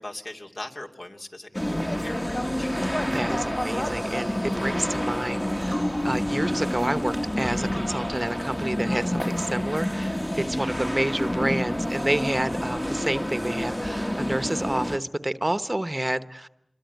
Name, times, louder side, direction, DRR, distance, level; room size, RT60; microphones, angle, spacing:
voice 1, 0.0-2.7 10.5-10.8, left 1 dB, 65° left, 2 dB, 2.7 m, -40 dB
sound 1, 1.5-15.0, equal, 15° left, 1.2 m, -28 dB
voice 2, 3.1-16.5, right 1 dB, 30° right, 12 dB, 1.0 m, -29 dB
sound 2, 5.7-12.6 12.9-13.0, left 1 dB, 40° left, 1.7 m, -37 dB
26.5 x 22.5 x 9.3 m, 0.79 s
wide cardioid pair, 45°, 0 cm